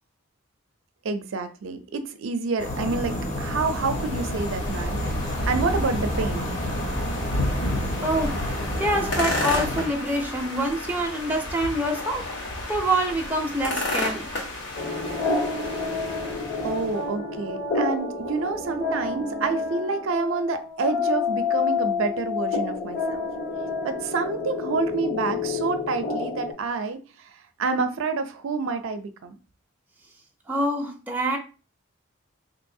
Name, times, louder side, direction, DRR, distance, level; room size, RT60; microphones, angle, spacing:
voice 1, 1.0-6.5 16.6-23.2 23.8-27.3 27.6-29.3, right 4 dB, 70° right, 0.4 m, -28 dB
sound 1, 2.6-9.9, left 1 dB, 35° left, 0.8 m, -30 dB
sound 2, 3.0-17.0, left 1 dB, 60° left, 0.9 m, -32 dB
voice 2, 8.0-8.4 8.8-12.3 12.7-14.3 30.5-31.4, right 1 dB, 10° right, 0.5 m, -26 dB
sound 3, 14.8-26.5, left 4 dB, 75° left, 1.7 m, -29 dB
3.8 x 2.8 x 2.6 m
head